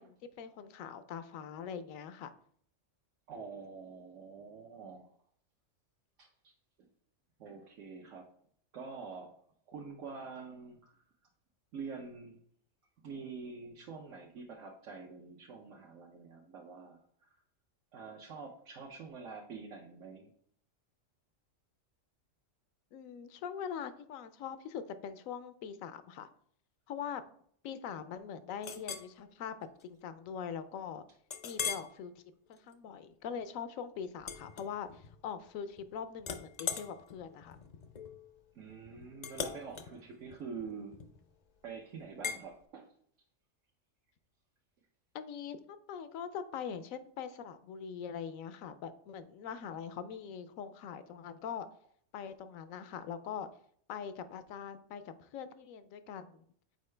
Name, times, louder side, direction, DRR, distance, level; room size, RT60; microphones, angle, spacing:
voice 1, 0.0-2.3 22.9-26.3 26.9-27.2 27.6-29.5 29.8-31.0 31.4-32.1 32.5-37.6 45.1-51.7 52.1-53.5 53.9-56.4, left 7 dB, 90° left, 12 dB, 1.0 m, -42 dB
voice 2, 3.3-5.1 6.2-6.5 7.4-8.2 8.7-9.4 9.7-11.0 11.7-12.4 13.0-17.3 17.9-20.3 38.5-41.0 41.6-42.9, right 5 dB, 75° right, -1 dB, 1.1 m, -46 dB
Chink clink, 28.6-29.1 29.6-29.8 30.3-30.4 31.3-31.9 32.5-32.7 34.2-35.2 35.5-35.9 36.2-41.3 42.2-42.4, left 6 dB, 55° left, 0.4 m, -41 dB
6.6 x 4.6 x 3.2 m, 0.63 s
omnidirectional pair, 1.4 m